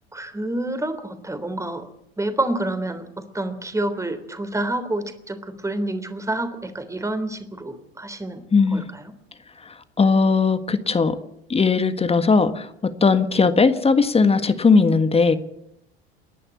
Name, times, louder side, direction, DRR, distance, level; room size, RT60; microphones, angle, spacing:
voice 1, 0.1-1.9 2.2-8.4 8.7-9.1, right 1 dB, 10° right, 9 dB, 3.4 m, -28 dB
voice 2, 8.5-8.8 9.6-11.2 11.5-15.4, left 4 dB, 20° left, 11 dB, 1.6 m, -18 dB
29.5 x 11.0 x 8.5 m, 0.76 s
figure-of-eight pair, 75°, 32 cm